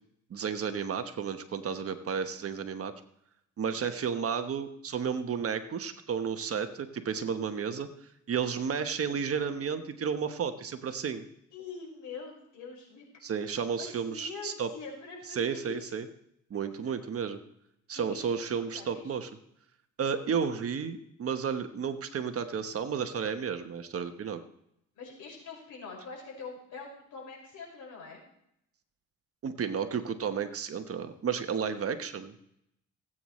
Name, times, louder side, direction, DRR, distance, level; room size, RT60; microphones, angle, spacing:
voice 1, 0.3-2.9 3.6-7.9 8.3-11.2 13.2-14.7 15.3-16.0 16.5-17.4 17.9-19.3 20.0-24.4 29.4-32.3, right 6 dB, 50° right, 8 dB, 1.2 m, -32 dB
voice 2, 11.5-13.0 13.8-15.8 16.8-16.9 17.9-19.2 25.0-28.2, left 4 dB, 70° left, -2 dB, 5.7 m, -44 dB
18.0 x 8.8 x 3.2 m, 0.75 s
cardioid pair, 90°, 30 cm